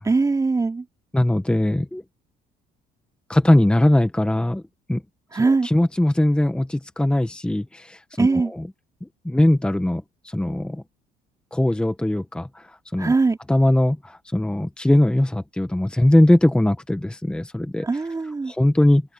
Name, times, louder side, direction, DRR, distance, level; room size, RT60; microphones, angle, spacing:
voice 1, 0.0-0.8 5.3-5.7 8.2-8.5 13.0-13.4 17.8-18.5, right 3 dB, 20° right, 3.0 m, -21 dB
voice 2, 1.1-2.0 3.3-4.6 4.9-5.0 5.3-8.7 9.2-10.8 11.5-13.1 13.5-17.9 18.5-19.0, left 1 dB, 5° left, 1.4 m, -20 dB
open air
cardioid pair, 110°, 17 cm